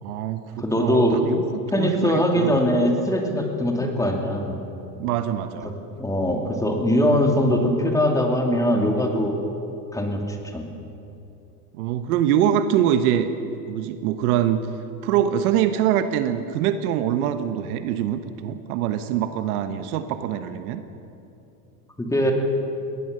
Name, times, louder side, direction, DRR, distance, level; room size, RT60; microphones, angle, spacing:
voice 1, 0.0-1.4 1.7-2.6 5.0-5.7 11.8-13.3 13.7-14.6 15.0-20.8, right 10 dB, 65° right, 10 dB, 1.3 m, -24 dB
voice 2, 0.6-1.2 1.7-4.5 5.6-9.4 9.9-10.7 22.0-22.3, equal, 5° left, 2 dB, 2.7 m, -22 dB
21.0 x 18.0 x 6.8 m, 2.8 s
supercardioid pair, 120°, 49 cm